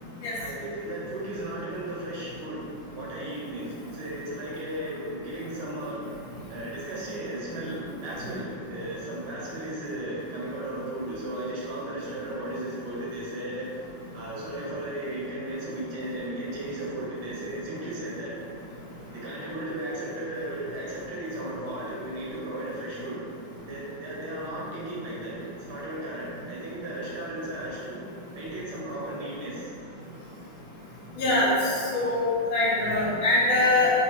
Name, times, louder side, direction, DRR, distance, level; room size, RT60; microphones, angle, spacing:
voice 1, 0.3-2.6 3.0-6.0 6.5-13.8 14.1-18.3 19.1-23.2 23.7-28.0 28.4-29.7, right 1 dB, 90° right, -7 dB, 1.8 m, -35 dB
voice 2, 31.2-31.5 31.9-33.9, left 2 dB, 50° left, -8 dB, 1.1 m, -23 dB
3.4 x 3.2 x 2.9 m, 2.4 s
omnidirectional pair, 2.3 m